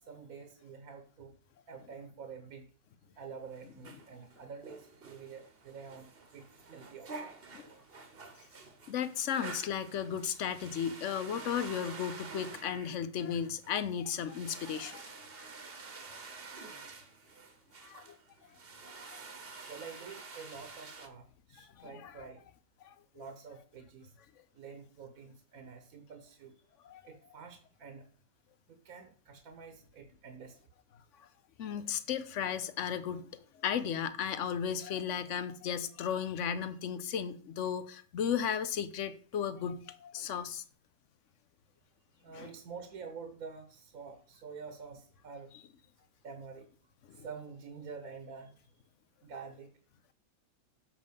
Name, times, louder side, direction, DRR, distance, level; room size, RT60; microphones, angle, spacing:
voice 1, 0.0-1.3 1.7-2.7 3.1-6.5 6.7-7.3 19.7-22.4 23.1-24.1 24.5-26.5 27.0-28.1 28.7-30.6 42.2-45.5 46.2-46.7 47.1-48.6 49.2-49.7, right 5 dB, 70° right, 1.4 m, -48 dB
sound 1, 3.4-21.1, right 4 dB, 45° right, 1.2 m, -49 dB
voice 2, 8.9-15.0 15.3-15.4 16.1-16.2 17.8-18.2 19.1-19.2 19.5-19.6 21.8-22.1 22.8-22.9 26.8-27.0 31.2-31.3 31.6-40.6 42.3-42.5 47.1-47.2, left 8 dB, 60° left, 0.9 m, -35 dB
7.5 x 5.4 x 5.2 m
omnidirectional pair, 1.6 m